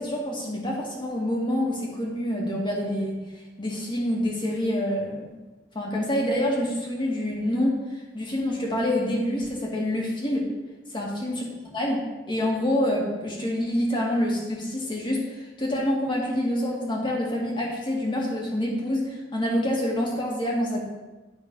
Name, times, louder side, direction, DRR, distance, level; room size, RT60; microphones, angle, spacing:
voice 1, 0.0-3.2 3.6-5.2 5.7-7.8 8.1-10.5 10.9-11.4 11.7-12.0 12.3-20.8, left 1 dB, 25° left, -2 dB, 1.9 m, -26 dB
11.0 x 3.8 x 5.3 m, 1.2 s
head